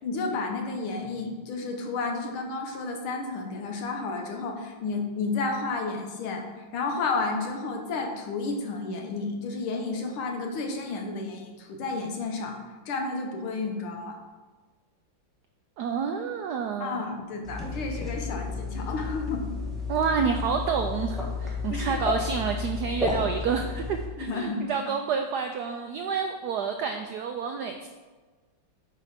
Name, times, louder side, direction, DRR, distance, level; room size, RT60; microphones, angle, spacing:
voice 1, 0.0-6.5 6.7-12.6 12.9-14.2 16.8-19.5 21.7-22.1 24.2-24.7, left 3 dB, 80° left, 3 dB, 1.9 m, -31 dB
voice 2, 15.8-17.0 19.9-27.9, right 6 dB, 85° right, 5 dB, 0.9 m, -29 dB
sound 1, 17.4-24.1, left 4 dB, ahead, 1.2 m, -32 dB
8.3 x 4.8 x 5.0 m, 1.3 s
omnidirectional pair, 2.3 m